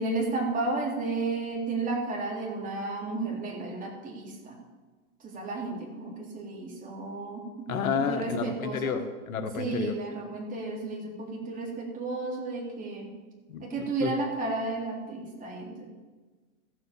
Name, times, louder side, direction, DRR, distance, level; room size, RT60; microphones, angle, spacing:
voice 1, 0.0-4.6 5.2-7.4 8.1-8.9 9.6-13.1 13.6-15.9, right 3 dB, 20° right, -2 dB, 3.6 m, -32 dB
voice 2, 7.7-9.9 13.5-14.1, left 5 dB, 75° left, 7 dB, 1.6 m, -31 dB
15.0 x 8.1 x 7.0 m, 1.3 s
hypercardioid pair, 125°, 42 cm